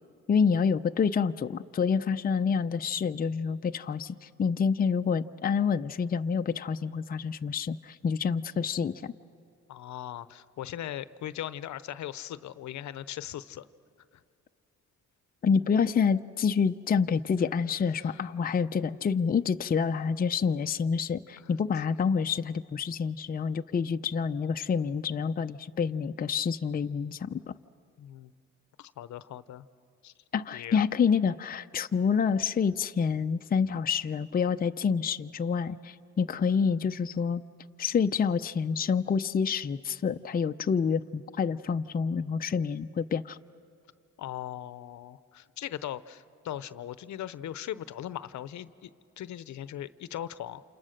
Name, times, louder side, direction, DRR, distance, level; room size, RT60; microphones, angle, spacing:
voice 1, 0.3-9.1 15.4-27.5 30.3-37.4 37.8-43.4, left 6 dB, 30° left, 8 dB, 0.6 m, -28 dB
voice 2, 9.7-13.7 17.9-18.3 21.4-21.5 28.0-28.3 28.8-29.7 30.0-30.1 30.5-30.8 44.2-48.9 49.2-50.6, left 11 dB, 70° left, 15 dB, 0.8 m, -39 dB
29.0 x 28.0 x 6.6 m, 2.4 s
cardioid pair, 90°, 30 cm